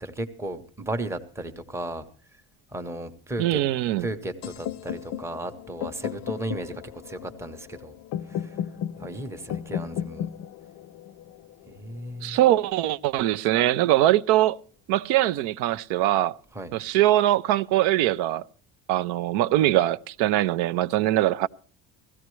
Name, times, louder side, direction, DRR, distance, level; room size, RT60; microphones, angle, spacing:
voice 1, 0.0-2.1 2.7-3.6 4.0-7.9 8.2-8.6 9.0-10.3 11.7-12.4 16.5-16.7, right 1 dB, 5° right, 0.7 m, -35 dB
voice 2, 3.4-4.1 12.2-14.6 14.9-16.4 16.7-18.4 18.9-21.5, right 14 dB, 90° right, 0.6 m, -22 dB
sound 1, 4.4-12.4, left 10 dB, 45° left, 0.5 m, -35 dB
17.0 x 14.5 x 3.1 m
cardioid pair, 160°, 38 cm